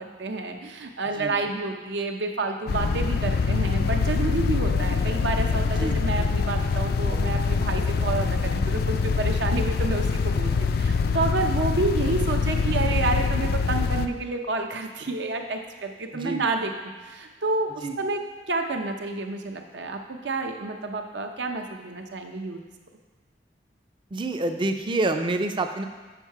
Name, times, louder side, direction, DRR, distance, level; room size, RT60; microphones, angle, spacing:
voice 1, 0.0-16.7 17.0-18.2 18.5-22.6, right 3 dB, 75° right, 4 dB, 0.7 m, -29 dB
sound 1, 2.7-14.1, left 5 dB, 60° left, 0.4 m, -24 dB
sound 2, 2.8-15.4, left 1 dB, 85° left, 1.0 m, -45 dB
voice 2, 16.1-16.4 17.8-18.0 24.1-25.8, right 2 dB, 30° right, 7 dB, 0.5 m, -27 dB
7.4 x 5.5 x 4.6 m, 1.4 s
head